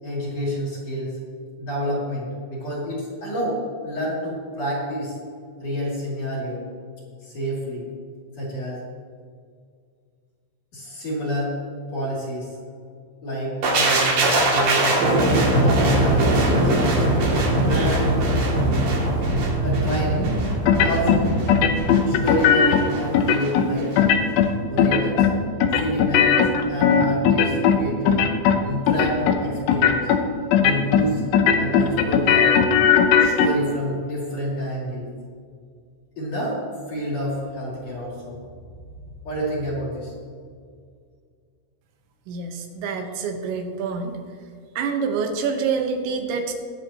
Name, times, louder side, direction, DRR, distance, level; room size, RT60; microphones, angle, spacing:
voice 1, 0.0-1.2 1.6-5.2 5.6-6.6 7.2-7.9 8.4-8.8 10.7-11.6 11.9-12.6 13.2-15.1 15.6-17.1 17.7-18.1 19.6-20.3 20.7-21.3 22.0-24.0 24.7-25.3 25.8-28.3 28.6-30.1 30.5-31.2 31.5-32.5 33.2-35.1 36.2-36.6 36.9-38.4 39.2-40.1, equal, 40° left, -6 dB, 3.4 m, -28 dB
sound 1, 13.6-23.5 23.8-24.0, right 1 dB, 60° right, 3.8 m, -21 dB
sound 2, 20.7-21.2 21.5-22.8 23.1-23.7 24.0-24.5 24.8-25.3 25.6-27.8 28.1-28.6 28.9-29.4 29.7-30.2 30.5-31.1 31.3-33.5, left 8 dB, 80° left, 2.8 m, -17 dB
voice 2, 42.3-44.2 44.8-46.5, right 5 dB, 90° right, 4 dB, 3.4 m, -26 dB
20.5 x 7.7 x 2.9 m, 2.1 s
omnidirectional pair, 5.0 m